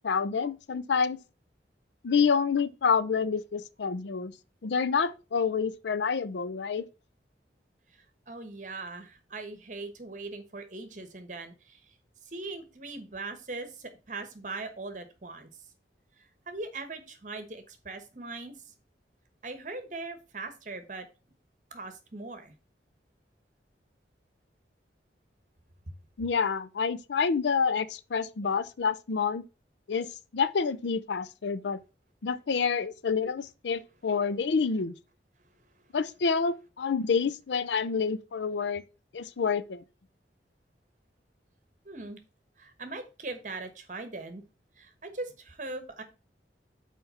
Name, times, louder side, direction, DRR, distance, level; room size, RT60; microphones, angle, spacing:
voice 1, 0.0-1.2 2.0-4.3 4.6-6.8 26.2-29.4 29.9-30.1 30.3-31.8 32.2-34.9 35.9-38.8 39.1-39.8, left 5 dB, 75° left, 0.5 m, -28 dB
voice 2, 8.3-11.8 12.2-15.5 16.5-18.6 19.4-21.1 21.7-22.5 41.8-42.2 42.6-44.4 44.8-46.0, right 3 dB, 45° right, 1.2 m, -40 dB
5.6 x 4.6 x 5.5 m
head